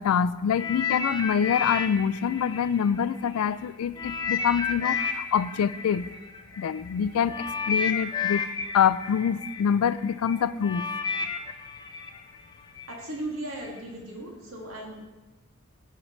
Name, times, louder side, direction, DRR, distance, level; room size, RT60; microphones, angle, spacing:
voice 1, 0.0-6.1 6.6-8.5 8.7-10.9, left 7 dB, 85° left, 16 dB, 0.3 m, -25 dB
sound 1, 0.6-3.5 4.0-12.9 13.7-13.8, left 5 dB, 20° left, 0.5 m, -32 dB
voice 2, 12.9-15.1, right 1 dB, 75° right, -2 dB, 2.2 m, -37 dB
13.5 x 6.6 x 3.2 m, 1.1 s
head